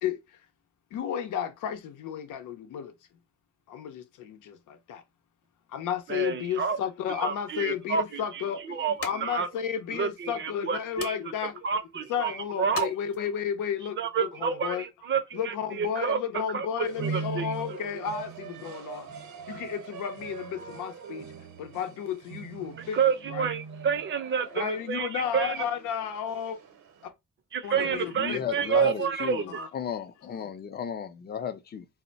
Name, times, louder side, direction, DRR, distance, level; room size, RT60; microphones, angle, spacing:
voice 1, 0.0-0.4 0.9-2.9 3.7-5.0 5.7-11.6 12.1-14.9 15.3-19.1 19.5-21.3 21.6-23.0 23.3-23.5 24.5-26.6 27.0-27.1 27.6-29.7 30.2-30.5, left 8 dB, 85° left, 0.7 m, -33 dB
voice 2, 6.1-6.8 7.1-8.4 8.7-9.5 9.9-11.2 11.6-12.9 14.0-16.2 16.5-17.5 22.9-25.6 27.5-29.7, right 6 dB, 40° right, 0.6 m, -29 dB
sound 1, 7.3-13.6, left 5 dB, 50° left, 0.9 m, -45 dB
sound 2, 16.8-27.0, right 5 dB, 70° right, 0.8 m, -40 dB
voice 3, 27.8-31.9, left 8 dB, 35° left, 0.5 m, -35 dB
2.2 x 2.1 x 3.8 m
cardioid pair, 90°, 30 cm